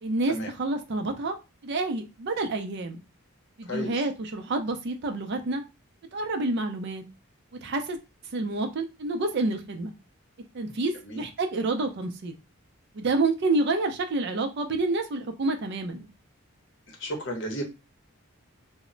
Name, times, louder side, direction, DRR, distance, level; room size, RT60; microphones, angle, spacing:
voice 1, 0.0-1.4 1.6-3.0 3.6-5.6 6.1-7.0 7.5-8.0 8.3-9.9 10.5-12.3 12.9-16.1, right 2 dB, 50° right, 6 dB, 0.4 m, -28 dB
voice 2, 3.7-4.0 11.0-11.2 16.9-17.6, equal, 55° left, 3 dB, 0.7 m, -33 dB
2.0 x 2.0 x 3.7 m, 0.28 s
head